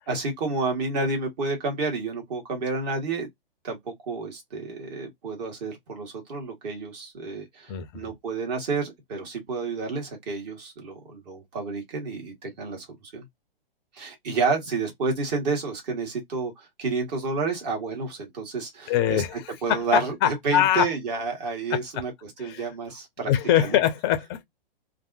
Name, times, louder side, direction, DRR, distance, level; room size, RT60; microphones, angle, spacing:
voice 1, 0.1-3.3 3.6-13.2 13.9-19.2 19.6-23.3 23.6-23.8, right 4 dB, 45° right, 1.7 m, -30 dB
voice 2, 18.9-20.8 21.7-21.8 22.4-22.7 23.3-24.4, left 11 dB, 25° left, 0.5 m, -23 dB
3.2 x 2.5 x 2.5 m
figure-of-eight pair, 115°, 30 cm